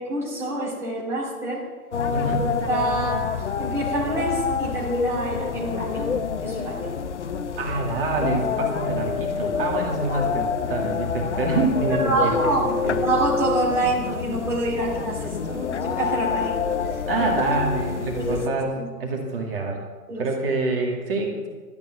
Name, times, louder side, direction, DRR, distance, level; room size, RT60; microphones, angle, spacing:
voice 1, 0.0-1.6 2.2-2.3 2.7-6.1 6.4-6.9 11.9-16.6 16.9-17.5 18.1-18.4 18.8-18.9 20.1-20.3, right 2 dB, 5° right, -5 dB, 2.2 m, -27 dB
sound 1, 1.9-18.5, left 6 dB, 45° left, 0.8 m, -27 dB
voice 2, 2.1-2.5 7.6-13.0 17.1-19.8 20.2-21.5, right 3 dB, 35° right, 0 dB, 2.1 m, -26 dB
12.5 x 8.2 x 8.0 m, 1.5 s
figure-of-eight pair, 135°, 47 cm